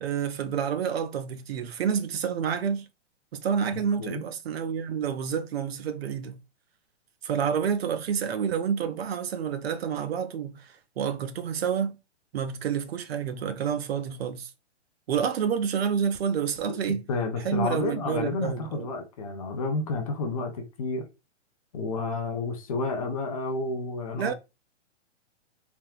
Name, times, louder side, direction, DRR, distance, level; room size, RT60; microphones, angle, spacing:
voice 1, 0.0-2.9 3.3-6.4 7.2-12.0 12.3-14.5 15.1-17.0 17.4-18.9 24.1-24.3, right 7 dB, 60° right, 0.5 m, -29 dB
voice 2, 17.1-21.0 21.7-24.3, left 3 dB, 30° left, 0.5 m, -30 dB
3.4 x 2.6 x 2.4 m
hypercardioid pair, 155°, 36 cm